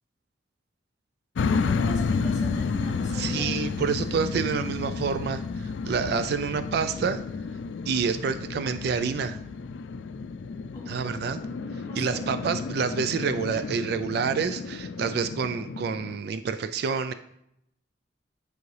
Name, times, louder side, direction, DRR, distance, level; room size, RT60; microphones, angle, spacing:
sound 1, 1.4-16.2, left 4 dB, 90° left, 0.3 m, -31 dB
voice 1, 1.5-3.6 10.7-12.3, equal, 20° left, -3 dB, 2.6 m, -41 dB
voice 2, 3.1-7.2 7.9-9.4 10.9-11.4 12.0-17.1, right 6 dB, 60° right, 10 dB, 0.3 m, -28 dB
9.3 x 4.8 x 3.2 m, 0.78 s
head